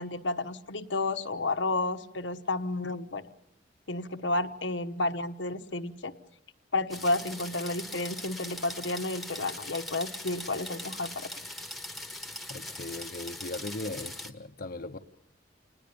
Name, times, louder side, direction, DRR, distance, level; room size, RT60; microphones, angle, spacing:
voice 1, 0.0-3.2 3.9-6.1 6.7-11.4, left 2 dB, 80° left, 1.3 m, -31 dB
sound 1, 6.9-14.3, left 1 dB, ahead, 1.4 m, -41 dB
voice 2, 12.5-15.0, left 2 dB, 50° left, 0.9 m, -38 dB
28.5 x 20.0 x 7.0 m
head